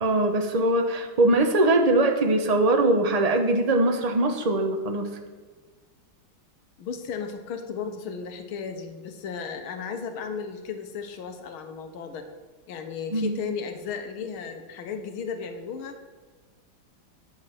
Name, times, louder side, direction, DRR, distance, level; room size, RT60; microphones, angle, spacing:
voice 1, 0.0-5.1 13.1-13.3, right 2 dB, 35° right, 4 dB, 0.6 m, -22 dB
voice 2, 6.8-12.3 12.7-16.0, left 6 dB, 85° left, 6 dB, 1.8 m, -35 dB
9.7 x 7.7 x 5.8 m, 1.4 s
omnidirectional pair, 2.3 m